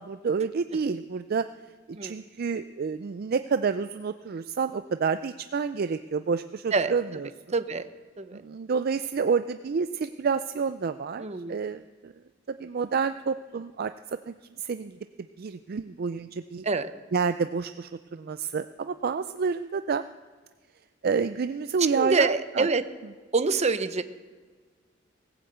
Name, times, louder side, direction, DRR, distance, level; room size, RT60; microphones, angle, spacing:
voice 1, 0.0-1.5 2.0-7.3 8.3-12.1 12.5-15.0 15.4-16.6 17.1-20.0 21.0-22.7, right 5 dB, 50° right, 11 dB, 0.4 m, -29 dB
voice 2, 7.5-7.9 8.2-8.4 11.2-11.6 16.6-16.9 21.9-22.8 23.3-24.0, right 4 dB, 35° right, 10 dB, 0.8 m, -26 dB
18.5 x 8.0 x 8.0 m, 1.5 s
head